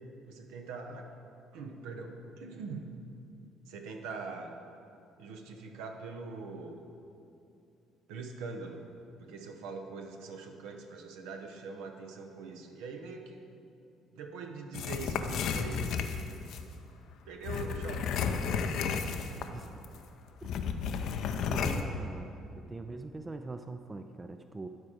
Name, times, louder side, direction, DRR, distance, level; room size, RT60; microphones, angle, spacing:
voice 1, 0.3-1.1 1.5-2.9 3.7-4.5 5.2-6.8 8.1-8.8 9.2-13.6 14.1-16.1 17.2-18.1, right 4 dB, 70° right, 4 dB, 0.8 m, -42 dB
sound 1, 14.7-16.7 17.4-19.6 19.8-20.0 20.4-21.8, left 6 dB, 60° left, 0.5 m, -32 dB
voice 2, 21.5-24.7, right 3 dB, 25° right, 8 dB, 0.4 m, -42 dB
11.5 x 4.8 x 4.9 m, 2.7 s
figure-of-eight pair, 50°, 0 cm